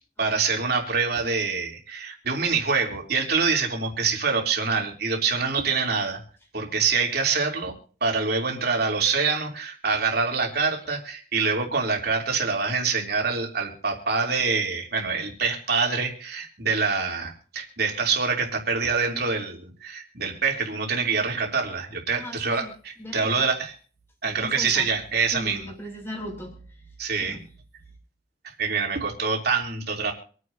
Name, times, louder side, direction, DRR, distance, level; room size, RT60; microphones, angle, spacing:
voice 1, 0.2-6.2 6.5-7.7 8.0-23.7 24.2-25.7 27.0-27.4 28.6-30.1, right 5 dB, 60° right, 1 dB, 3.2 m, -25 dB
voice 2, 22.1-22.7 23.0-23.5 24.2-24.9 25.3-27.5 27.9-28.0, equal, 15° left, -1 dB, 3.7 m, -39 dB
26.5 x 9.5 x 2.8 m, 0.42 s
head